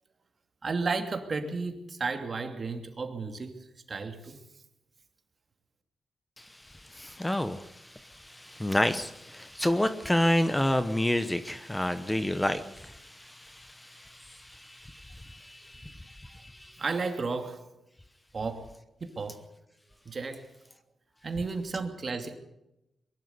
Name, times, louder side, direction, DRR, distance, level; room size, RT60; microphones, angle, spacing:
voice 1, 0.6-3.5 3.9-4.4 16.8-17.7 18.3-18.7 19.0-19.5 20.0-20.5 21.2-22.3, right 4 dB, 40° right, 6 dB, 2.7 m, -33 dB
voice 2, 6.4-16.8, left 1 dB, 10° left, 11 dB, 1.0 m, -30 dB
22.5 x 12.0 x 9.7 m, 0.89 s
cardioid pair, 110°, 0 cm